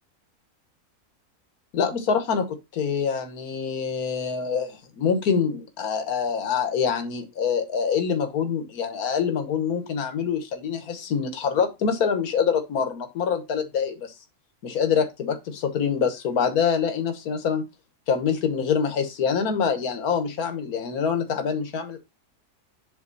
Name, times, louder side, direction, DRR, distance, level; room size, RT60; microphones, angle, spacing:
voice 1, 1.7-14.1 14.6-17.6 18.1-22.0, left 6 dB, 70° left, 1.7 m, -25 dB
7.6 x 4.5 x 4.0 m
omnidirectional pair, 1.6 m